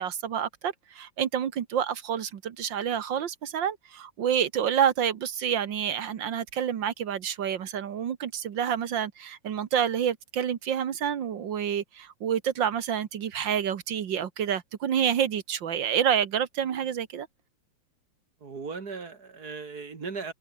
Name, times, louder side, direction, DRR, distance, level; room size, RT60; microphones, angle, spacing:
voice 1, 0.0-17.3, right 8 dB, 70° right, 2.0 m, -28 dB
voice 2, 18.4-20.3, right 4 dB, 50° right, 3.1 m, -37 dB
open air
omnidirectional pair, 2.1 m